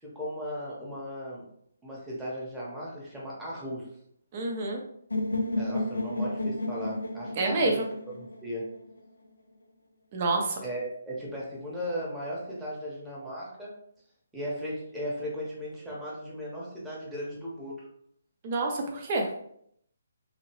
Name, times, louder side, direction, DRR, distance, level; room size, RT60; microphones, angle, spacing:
voice 1, 0.0-1.4 1.8-3.9 5.6-7.8 8.2-8.7 10.6-13.7 14.3-17.9, equal, 5° right, -7 dB, 1.1 m, -36 dB
voice 2, 4.3-4.8 7.4-7.8 10.1-10.6 18.4-19.3, right 2 dB, 35° right, 1 dB, 0.7 m, -28 dB
sound 1, 5.1-9.1, left 2 dB, 85° left, 0.4 m, -32 dB
2.9 x 2.7 x 3.0 m, 0.69 s
figure-of-eight pair, 145°, 0 cm